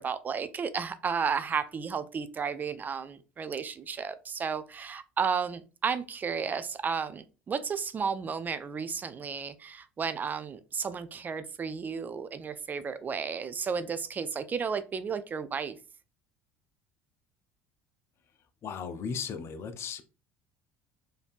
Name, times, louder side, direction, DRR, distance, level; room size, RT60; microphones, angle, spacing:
voice 1, 0.0-15.8, right 6 dB, 30° right, 0.3 m, -33 dB
voice 2, 18.6-20.0, left 6 dB, 45° left, 0.5 m, -36 dB
3.3 x 2.6 x 2.4 m
hypercardioid pair, 65°, 6 cm